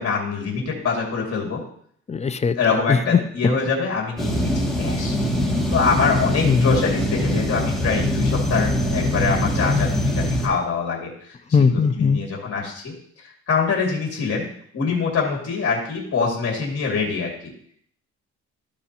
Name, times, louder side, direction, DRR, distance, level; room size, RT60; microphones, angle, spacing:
voice 1, 0.0-1.6 2.6-5.2 5.7-11.4 11.6-14.5 14.7-17.5, left 5 dB, 55° left, -1 dB, 2.2 m, -24 dB
voice 2, 2.1-2.6 2.9-3.2 6.4-6.7 11.5-12.2, left 5 dB, 25° left, 11 dB, 0.4 m, -18 dB
sound 1, 4.2-10.5, left 1 dB, ahead, 2.1 m, -23 dB
13.0 x 4.9 x 2.8 m, 0.63 s
cardioid pair, 90°, 30 cm